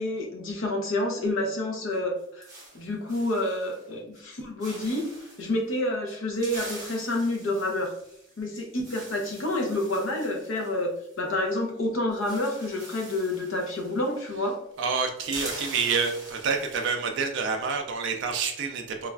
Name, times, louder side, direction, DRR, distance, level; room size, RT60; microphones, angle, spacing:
voice 1, 0.0-2.5 2.7-5.1 5.4-7.9 8.4-14.6, left 1 dB, 65° left, 1 dB, 0.6 m, -28 dB
sound 1, 1.9-3.9 4.1-4.3 4.6-5.5 6.1-11.5 11.8-11.9 12.1-14.5 14.8-17.2, right 1 dB, 15° right, 0.8 m, -44 dB
voice 2, 14.8-19.1, right 5 dB, 55° right, 4 dB, 0.4 m, -28 dB
3.2 x 2.3 x 2.3 m, 0.73 s
head